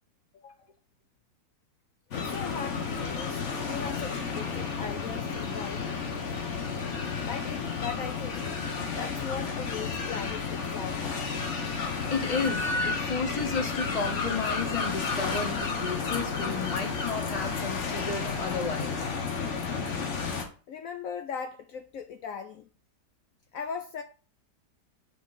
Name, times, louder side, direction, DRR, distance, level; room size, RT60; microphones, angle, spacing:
voice 1, 2.1-5.9 7.2-8.5 8.9-11.3 20.7-22.7 23.5-24.0, left 6 dB, 75° left, 0.8 m, -39 dB
sound 1, 2.1-20.4, left 5 dB, 45° left, 1.3 m, -32 dB
voice 2, 12.1-19.0, left 4 dB, 30° left, 0.8 m, -32 dB
7.6 x 4.4 x 4.1 m
omnidirectional pair, 1.9 m